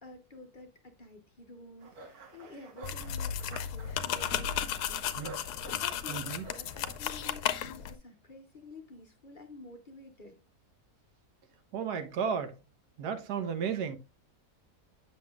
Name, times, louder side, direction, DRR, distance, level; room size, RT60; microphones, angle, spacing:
voice 1, 0.0-10.4, left 2 dB, 40° left, 0.9 m, -50 dB
sound 1, 1.8-7.5, right 3 dB, 70° right, 1.7 m, -50 dB
sound 2, 2.8-7.9, left 9 dB, 80° left, 1.2 m, -34 dB
voice 2, 6.1-6.4 11.7-12.6 13.0-14.0, right 7 dB, 85° right, 1.5 m, -33 dB
7.7 x 6.9 x 2.3 m
omnidirectional pair, 1.7 m